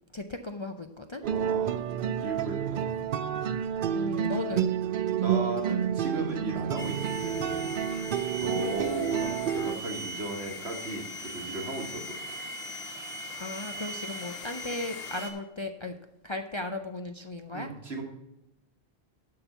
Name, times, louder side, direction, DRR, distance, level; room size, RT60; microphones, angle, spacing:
voice 1, 0.1-1.2 3.9-4.7 8.4-8.6 13.4-16.0 16.2-17.7, left 2 dB, 40° left, 6 dB, 0.5 m, -36 dB
sound 1, 1.2-9.8, right 9 dB, 60° right, 0.7 m, -29 dB
voice 2, 1.2-1.9 2.2-3.0 5.2-7.6 8.4-12.2 17.5-18.0, right 2 dB, 80° right, 1 dB, 2.0 m, -36 dB
sound 2, 6.8-15.3, left 1 dB, 65° left, 1.5 m, -39 dB
11.5 x 4.4 x 6.7 m, 0.93 s
omnidirectional pair, 1.1 m